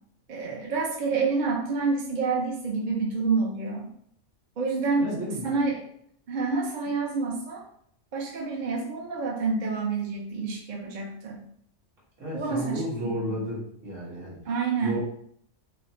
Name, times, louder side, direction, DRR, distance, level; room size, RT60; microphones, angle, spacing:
voice 1, 0.3-3.9 4.6-5.8 6.3-7.6 8.1-11.4 12.3-12.8 13.2-13.4 14.4-15.0, right 4 dB, 50° right, -1 dB, 0.6 m, -28 dB
voice 2, 5.0-5.5 12.2-14.4 14.8-15.0, equal, 70° right, -8 dB, 2.1 m, -32 dB
5.6 x 2.0 x 2.9 m, 0.66 s
omnidirectional pair, 1.3 m